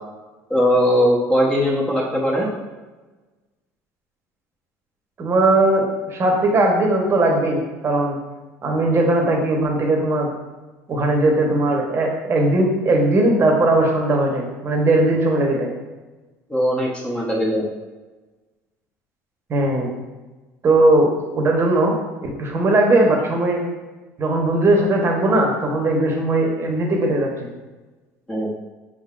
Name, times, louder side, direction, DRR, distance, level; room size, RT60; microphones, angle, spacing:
voice 1, 0.5-2.5 16.5-17.7 28.3-28.5, equal, 10° left, -4 dB, 0.9 m, -19 dB
voice 2, 5.2-8.2 8.6-10.3 10.9-15.7 19.5-19.9 20.6-21.9 22.2-23.6 24.2-27.5, right 2 dB, 35° right, 1 dB, 1.0 m, -19 dB
5.1 x 3.7 x 2.4 m, 1.2 s
supercardioid pair, 95°, 8 cm